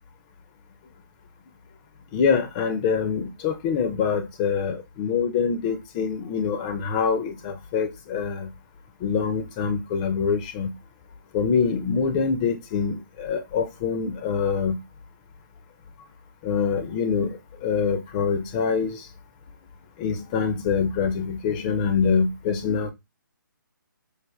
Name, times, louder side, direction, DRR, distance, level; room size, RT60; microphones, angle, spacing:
voice 1, 2.1-8.5 9.0-10.7 11.3-14.8 16.4-19.1 20.0-22.9, left 6 dB, 20° left, 0.5 m, -25 dB
4.8 x 2.4 x 2.2 m
figure-of-eight pair, 145°, 11 cm